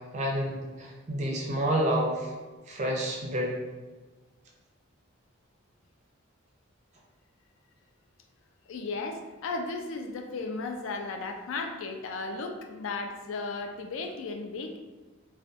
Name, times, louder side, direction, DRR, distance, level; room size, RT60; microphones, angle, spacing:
voice 1, 0.1-2.3 2.7-3.6, right 1 dB, 35° right, -1 dB, 0.4 m, -29 dB
voice 2, 8.7-14.8, left 3 dB, 75° left, 4 dB, 0.3 m, -35 dB
2.6 x 2.2 x 2.3 m, 1.3 s
head